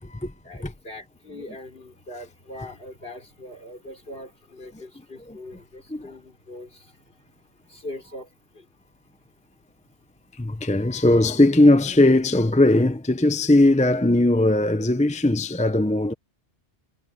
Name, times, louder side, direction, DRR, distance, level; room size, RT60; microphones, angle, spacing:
voice 1, 0.4-7.0 7.7-8.3 8.5-8.7, left 1 dB, 55° left, 4.8 m, -41 dB
voice 2, 10.4-16.1, left 1 dB, 10° left, 0.7 m, -19 dB
omnidirectional pair, 1.2 m